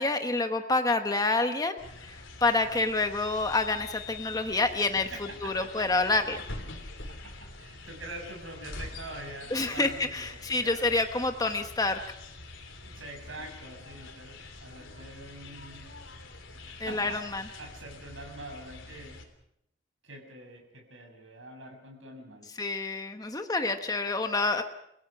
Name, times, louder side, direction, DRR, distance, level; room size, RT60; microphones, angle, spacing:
voice 1, 0.0-1.8 2.1-5.1 5.4-6.4 9.5-12.0 16.8-17.4 22.6-24.6, left 3 dB, 20° left, 6 dB, 1.1 m, -28 dB
sound 1, 1.8-19.2, left 3 dB, 90° left, 3.3 m, -45 dB
voice 2, 4.8-5.8 7.1-11.0 12.8-15.9 16.7-19.2 20.0-22.5, right 2 dB, 85° right, 2 dB, 7.2 m, -45 dB
30.0 x 16.5 x 6.0 m, 0.78 s
head